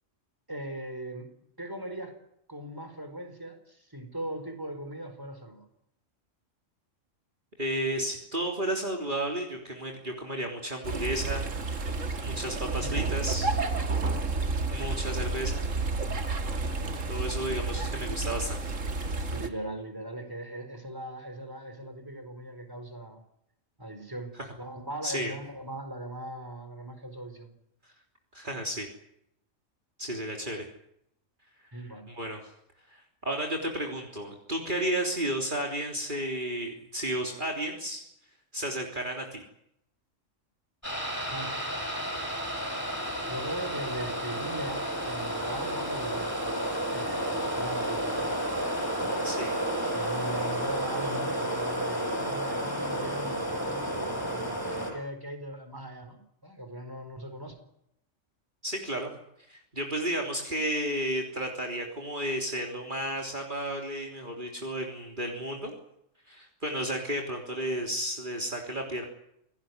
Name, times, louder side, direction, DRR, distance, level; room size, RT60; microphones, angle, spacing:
voice 1, 0.5-1.3 1.6-2.2 2.5-5.7 12.8-13.2 19.3-23.2 23.8-27.5 31.7-32.1 41.3-41.8 43.3-46.3 46.9-48.4 49.0-49.4 49.9-57.6, right 1 dB, 15° right, 7 dB, 4.6 m, -39 dB
voice 2, 7.6-13.5 14.7-15.7 17.1-18.6 25.0-25.3 28.3-28.9 30.0-30.7 32.1-32.4 32.9-38.0 38.5-39.4 49.2-49.5 58.6-59.1 59.5-65.7 66.3-69.0, right 1 dB, 40° right, 1 dB, 3.6 m, -33 dB
sound 1, 10.8-19.5, right 3 dB, 75° right, 2.4 m, -30 dB
sound 2, 40.8-54.9, right 1 dB, 10° left, 7.5 m, -31 dB
28.0 x 17.5 x 9.6 m, 0.78 s
omnidirectional pair, 1.3 m